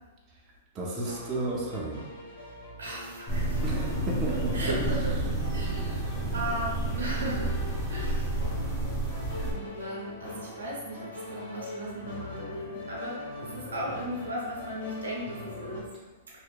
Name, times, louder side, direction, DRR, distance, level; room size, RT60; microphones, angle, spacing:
voice 1, 0.7-2.1 3.6-4.7, right 2 dB, 30° right, -3 dB, 0.5 m, -33 dB
sound 1, 1.0-15.8, left 2 dB, 75° left, 0.9 m, -43 dB
voice 2, 2.8-3.6 4.5-6.0 6.3-7.6 7.9-8.2 9.4-15.8, right 1 dB, 85° right, -4 dB, 0.7 m, -36 dB
sound 2, 3.3-9.5, right 1 dB, 5° left, 0.8 m, -30 dB
2.7 x 2.1 x 2.3 m, 1.2 s
hypercardioid pair, 115°, 0 cm